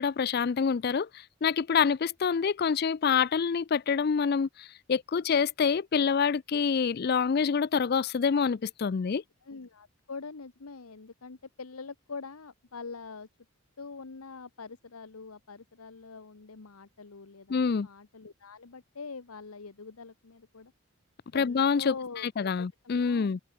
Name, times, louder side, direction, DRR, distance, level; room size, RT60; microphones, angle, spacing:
voice 1, 0.0-9.2 17.5-17.9 21.3-21.9 22.2-23.4, left 6 dB, 45° left, 0.4 m, -26 dB
voice 2, 9.4-13.3 13.8-20.7 21.3-23.4, left 4 dB, 90° left, 1.0 m, -44 dB
head